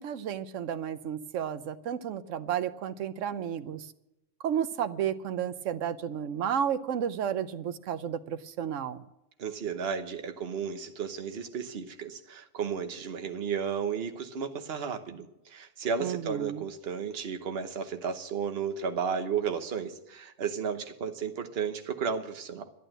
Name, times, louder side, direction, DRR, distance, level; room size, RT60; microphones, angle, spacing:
voice 1, 0.0-3.9 4.4-9.0 16.0-16.7, right 9 dB, 85° right, 12 dB, 1.1 m, -32 dB
voice 2, 9.4-22.7, right 6 dB, 55° right, 7 dB, 1.2 m, -33 dB
12.0 x 11.0 x 7.8 m, 0.87 s
omnidirectional pair, 1.3 m